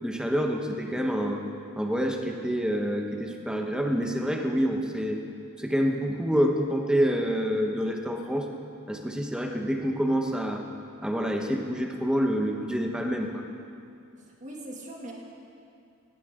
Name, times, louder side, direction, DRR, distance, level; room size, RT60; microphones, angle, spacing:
voice 1, 0.0-1.4 1.8-5.2 5.6-8.5 8.9-10.6 11.0-13.4, equal, 5° right, 2 dB, 1.1 m, -27 dB
voice 2, 14.2-15.1, right 1 dB, 35° right, -2 dB, 2.3 m, -41 dB
18.0 x 16.0 x 3.8 m, 2.5 s
head